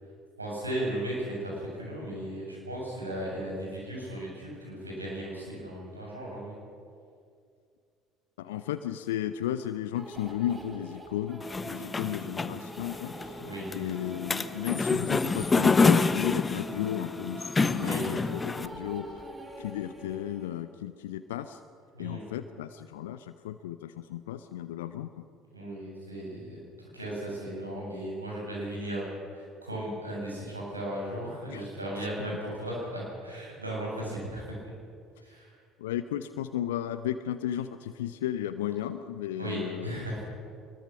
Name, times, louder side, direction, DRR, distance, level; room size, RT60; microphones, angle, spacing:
voice 1, 0.4-6.5 12.0-12.3 13.4-13.7 17.8-18.1 21.9-22.2 25.5-26.6 26.9-29.1 29.3-34.7 35.2-35.5 39.4-40.2, right 1 dB, 90° right, -4 dB, 7.3 m, -36 dB
voice 2, 8.4-13.4 13.7-19.3 19.6-21.6 22.0-25.3 31.5-31.7 32.2-32.3 35.8-40.2, left 11 dB, 70° left, 11 dB, 0.7 m, -34 dB
sound 1, 9.9-20.5, right 1 dB, 20° right, 4.2 m, -44 dB
sound 2, 11.4-18.7, left 4 dB, 25° left, 1.0 m, -27 dB
23.5 x 21.5 x 6.1 m, 2.3 s
figure-of-eight pair, 55°, 0 cm